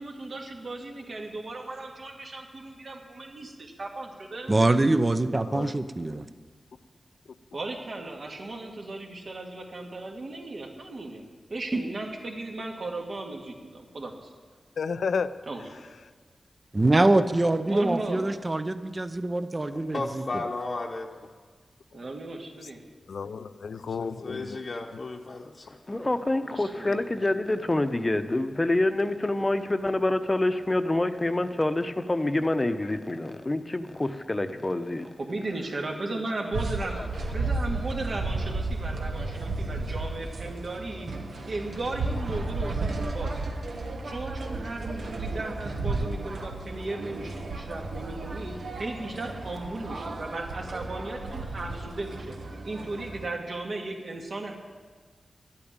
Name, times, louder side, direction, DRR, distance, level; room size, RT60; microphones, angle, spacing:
voice 1, 0.0-4.5 7.5-11.2 11.5-14.3 15.5-15.6 17.0-17.1 17.7-18.3 21.9-22.8 26.5-27.0 35.2-36.9 37.3-41.1 41.5-43.6 44.0-52.4 52.6-54.6, right 2 dB, 65° right, 0 dB, 2.1 m, -36 dB
voice 2, 4.5-6.3 11.7-11.8 16.7-20.4, right 2 dB, 30° right, 11 dB, 0.7 m, -24 dB
voice 3, 14.8-15.3 23.1-24.6, left 5 dB, 85° left, 12 dB, 0.5 m, -31 dB
voice 4, 19.7-21.3 24.0-25.8, left 2 dB, 55° left, -1 dB, 0.9 m, -35 dB
voice 5, 25.9-35.1 37.0-37.3, left 2 dB, 25° left, 9 dB, 0.8 m, -27 dB
sound 1, 36.5-53.3, right 2 dB, 85° right, 1.4 m, -33 dB
11.5 x 8.7 x 8.9 m, 1.5 s
cardioid pair, 65°, 0 cm